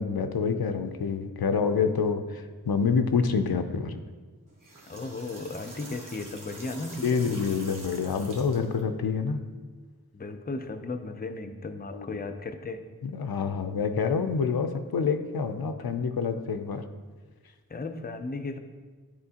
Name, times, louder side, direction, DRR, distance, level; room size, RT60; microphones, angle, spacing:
voice 1, 0.0-4.0 7.0-9.4 11.9-12.2 13.0-16.8, left 5 dB, 90° left, 8 dB, 0.5 m, -27 dB
sound 1, 4.5-8.8, right 2 dB, 60° right, 1.2 m, -46 dB
voice 2, 4.9-7.3 10.1-12.8 17.7-18.6, left 3 dB, 25° left, 7 dB, 0.5 m, -35 dB
10.5 x 4.3 x 2.8 m, 1.4 s
wide cardioid pair, 40°, 36 cm